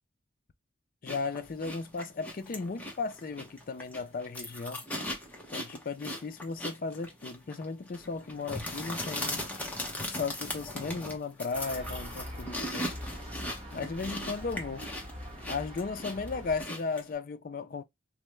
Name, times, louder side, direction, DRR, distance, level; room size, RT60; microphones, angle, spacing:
voice 1, 1.0-4.8 5.5-9.5 10.1-12.9 13.7-14.9 15.5-17.8, left 4 dB, 40° left, 0.3 m, -36 dB
sound 1, 1.1-17.1, left 1 dB, 10° left, 0.7 m, -39 dB
sound 2, 11.5-16.6, equal, 25° right, 0.9 m, -43 dB
3.3 x 2.1 x 3.1 m
head